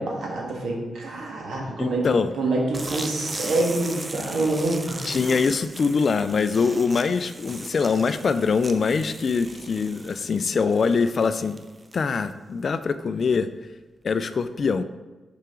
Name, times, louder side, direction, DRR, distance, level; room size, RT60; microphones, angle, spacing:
voice 1, 0.0-2.1 2.3-5.0, right 2 dB, 80° right, -1 dB, 1.5 m, -26 dB
voice 2, 1.8-2.3 5.1-11.6 11.9-13.5 14.0-14.8, left 5 dB, 55° left, 12 dB, 0.3 m, -23 dB
sound 1, 2.7-12.2, right 2 dB, 25° right, 0.5 m, -38 dB
5.6 x 4.9 x 3.7 m, 1.2 s
cardioid pair, 80°, 0 cm